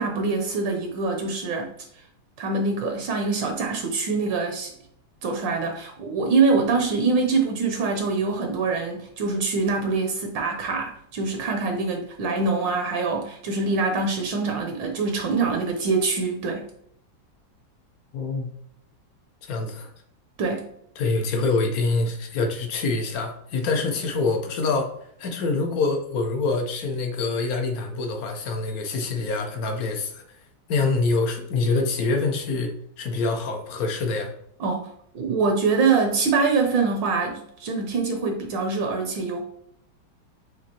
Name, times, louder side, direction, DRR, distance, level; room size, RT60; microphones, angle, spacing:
voice 1, 0.0-1.7 2.4-4.7 5.2-16.7 20.4-20.7 34.6-34.9 35.1-39.4, right 4 dB, 70° right, 3 dB, 1.3 m, -24 dB
voice 2, 18.1-18.5 19.4-19.9 21.0-24.9 25.2-30.2 30.7-32.7 33.0-34.3, left 3 dB, 60° left, 3 dB, 1.0 m, -25 dB
6.0 x 2.7 x 2.8 m, 0.70 s
omnidirectional pair, 2.2 m